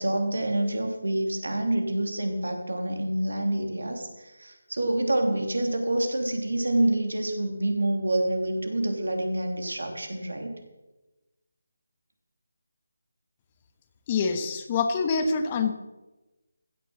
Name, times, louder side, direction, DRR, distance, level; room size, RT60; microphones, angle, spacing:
voice 1, 0.0-10.5, right 1 dB, 80° right, 4 dB, 2.9 m, -27 dB
voice 2, 14.1-15.7, left 4 dB, 25° left, 7 dB, 1.2 m, -25 dB
15.5 x 6.9 x 7.5 m, 1.1 s
figure-of-eight pair, 160°, 0 cm